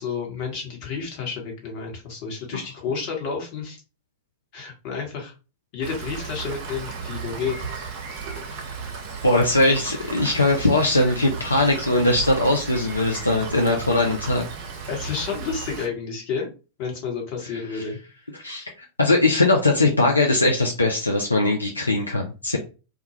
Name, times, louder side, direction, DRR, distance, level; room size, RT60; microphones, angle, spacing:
voice 1, 0.0-3.8 4.5-5.3 5.7-7.6 14.9-16.5 16.8-18.0, left 5 dB, 45° left, 0 dB, 1.1 m, -30 dB
Rain, 5.8-15.9, right 5 dB, 45° right, 0.7 m, -34 dB
voice 2, 9.2-14.4 17.7-17.8 18.4-22.6, left 2 dB, 80° left, 1 dB, 0.4 m, -20 dB
2.3 x 2.2 x 2.9 m, 0.31 s
figure-of-eight pair, 90°, 0 cm